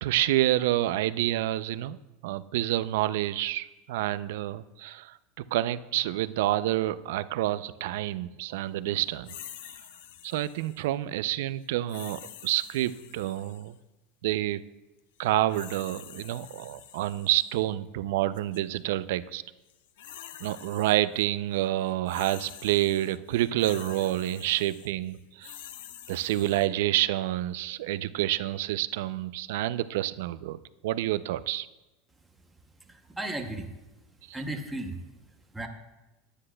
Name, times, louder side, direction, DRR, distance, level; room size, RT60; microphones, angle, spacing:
voice 1, 0.0-9.3 10.2-13.8 14.2-14.6 15.2-19.4 20.4-25.6 26.1-30.6 30.8-31.7 34.3-34.4, right 14 dB, 65° right, 15 dB, 0.4 m, -28 dB
sound 1, 9.2-10.9 11.9-13.7 15.2-17.6 18.3-18.6 19.7-21.2 21.5-26.7, left 11 dB, 75° left, 0.5 m, -47 dB
voice 2, 32.4-33.7 34.3-35.7, right 1 dB, 5° right, 3 dB, 0.7 m, -37 dB
19.5 x 9.8 x 2.2 m, 1.0 s
supercardioid pair, 175°, 0 cm